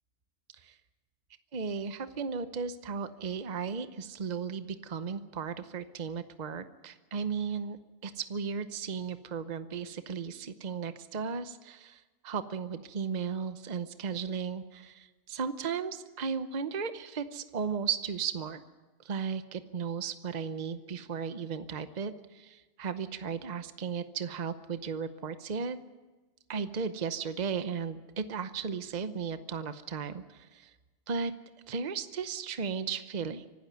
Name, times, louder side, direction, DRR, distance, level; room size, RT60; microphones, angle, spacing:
voice 1, 1.5-18.6 19.0-25.8 26.5-30.7 31.1-31.3 31.7-33.4, right 6 dB, 45° right, 11 dB, 0.9 m, -35 dB
25.0 x 12.5 x 9.3 m, 1.2 s
omnidirectional pair, 1.1 m